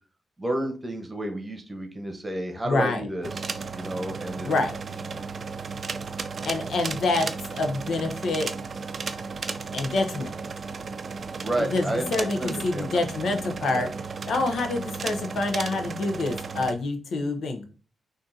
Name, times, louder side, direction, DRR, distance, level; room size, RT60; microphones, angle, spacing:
voice 1, 0.4-4.6 5.1-5.2 11.4-13.9, right 1 dB, 20° right, 4 dB, 1.0 m, -32 dB
voice 2, 2.6-3.0 4.4-4.7 6.5-8.5 9.7-10.3 11.6-13.9 14.3-17.6, left 3 dB, 80° left, 5 dB, 0.6 m, -27 dB
sound 1, 3.2-16.7, right 4 dB, 55° right, 0.3 m, -34 dB
3.7 x 2.6 x 2.7 m, 0.36 s
cardioid pair, 60°, 0 cm